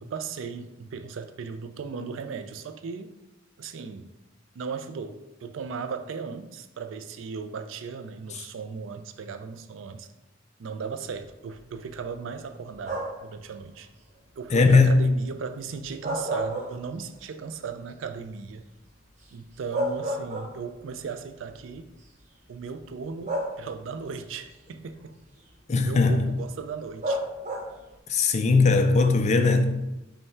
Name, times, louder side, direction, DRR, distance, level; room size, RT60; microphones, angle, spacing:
voice 1, 0.0-3.1 3.6-4.1 4.5-10.1 10.6-13.9 14.4-18.7 19.3-21.9 22.5-25.2 25.8-27.2, right 5 dB, 70° right, 0.4 m, -37 dB
sound 1, 12.8-13.3 15.8-17.2 17.6-17.7 19.2-19.3 19.7-20.9 21.9-22.0 23.3-24.0 27.0-27.9, right 1 dB, 35° right, 0.7 m, -31 dB
voice 2, 14.5-14.9 25.7-26.2 28.1-29.6, left 4 dB, 35° left, 0.4 m, -19 dB
5.4 x 2.3 x 4.3 m
head